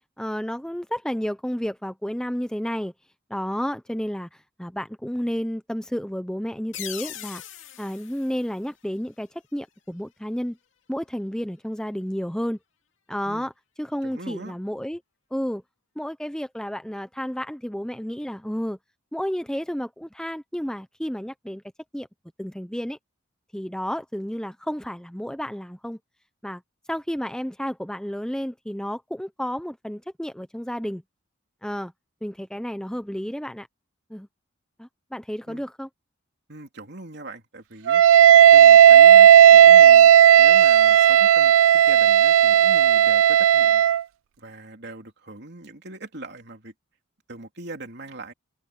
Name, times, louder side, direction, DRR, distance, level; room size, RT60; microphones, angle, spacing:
voice 1, 0.2-2.9 3.3-7.4 7.8-10.6 10.9-12.6 13.1-13.5 13.8-15.0 15.3-15.6 16.0-18.8 19.1-21.6 21.9-22.1 22.4-23.0 23.5-26.0 26.4-26.6 26.9-31.0 31.6-31.9 32.2-33.7 34.1-34.3 34.8-35.9, equal, 5° left, 0.7 m, -31 dB
sound 1, 6.7-9.3, left 12 dB, 75° left, 2.4 m, -40 dB
voice 2, 14.0-14.5 35.5-35.6 36.5-38.0 38.5-40.1 40.4-43.8 44.4-46.7 47.3-48.3, right 2 dB, 55° right, 3.3 m, -41 dB
Wind instrument woodwind instrument, 37.9-44.0, right 10 dB, 80° right, 0.3 m, -13 dB
head